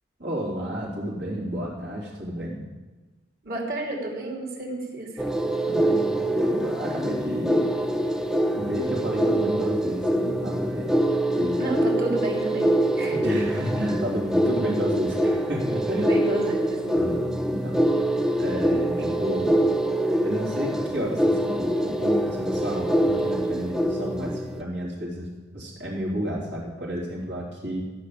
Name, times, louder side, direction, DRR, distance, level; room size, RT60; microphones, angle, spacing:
voice 1, 0.2-2.6 5.6-7.7 8.5-10.9 11.4-11.6 13.2-16.1 16.9-17.9 18.4-19.6 20.2-27.8, equal, 75° right, -4 dB, 3.4 m, -31 dB
voice 2, 3.4-5.2 11.6-12.7 13.0-13.2 15.9-16.9 19.0-19.1, right 1 dB, 55° right, -1 dB, 2.9 m, -30 dB
sound 1, 5.2-24.6, right 1 dB, 5° right, 0.6 m, -24 dB
14.5 x 5.7 x 8.5 m, 1.2 s
head